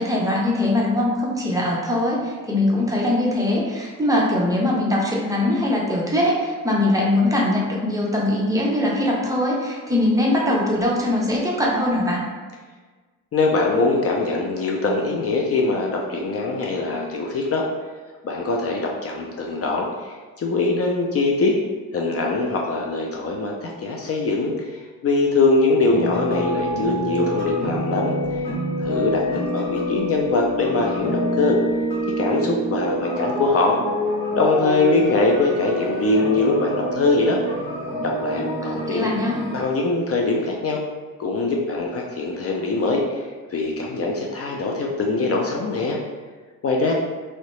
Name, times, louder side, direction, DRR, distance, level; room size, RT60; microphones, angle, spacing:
voice 1, 0.0-12.2 38.6-39.4, left 1 dB, 10° right, -4 dB, 0.6 m, -21 dB
voice 2, 13.3-17.6 18.2-21.6 21.9-28.4 28.8-31.6 32.2-33.8 34.4-37.4 38.0-39.1 39.5-40.8 41.2-46.0 46.6-46.9, left 3 dB, 45° left, 0 dB, 0.5 m, -22 dB
sound 1, 25.9-39.6, equal, 75° left, 1.4 m, -26 dB
3.1 x 2.8 x 3.1 m, 1.4 s
cardioid pair, 110°, 35 cm